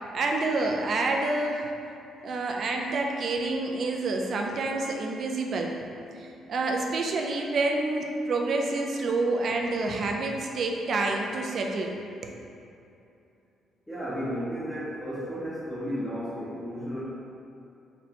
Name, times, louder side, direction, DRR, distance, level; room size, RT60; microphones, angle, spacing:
voice 1, 0.1-1.7 2.2-5.8 6.2-11.9 12.2-12.4, right 2 dB, 60° right, 1 dB, 0.3 m, -28 dB
voice 2, 13.9-17.1, equal, 10° left, -11 dB, 0.8 m, -33 dB
4.0 x 2.2 x 2.8 m, 2.6 s
cardioid pair, 90°, 0 cm